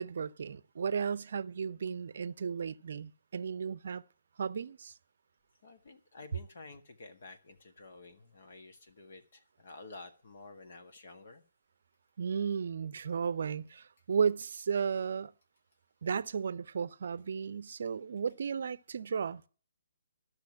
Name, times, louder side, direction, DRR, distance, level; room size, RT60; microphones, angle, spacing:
voice 1, 0.0-4.0 4.4-4.9 12.2-15.3 16.0-19.4, right 6 dB, 55° right, 0.7 m, -34 dB
voice 2, 5.6-11.4, left 3 dB, 55° left, 1.7 m, -51 dB
13.5 x 6.6 x 8.6 m
figure-of-eight pair, 135°, 0 cm